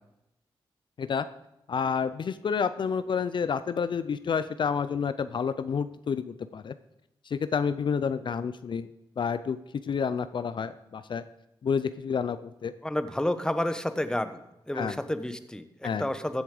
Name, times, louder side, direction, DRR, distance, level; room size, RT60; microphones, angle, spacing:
voice 1, 1.7-6.7 7.3-8.9 9.2-9.6 9.8-11.2 11.6-12.7 14.7-15.0 15.8-16.0, left 6 dB, 60° left, 13 dB, 0.5 m, -29 dB
voice 2, 12.8-14.4 14.7-16.4, left 1 dB, 10° left, 10 dB, 1.0 m, -30 dB
14.5 x 7.2 x 4.9 m, 0.89 s
cardioid pair, 65°, 9 cm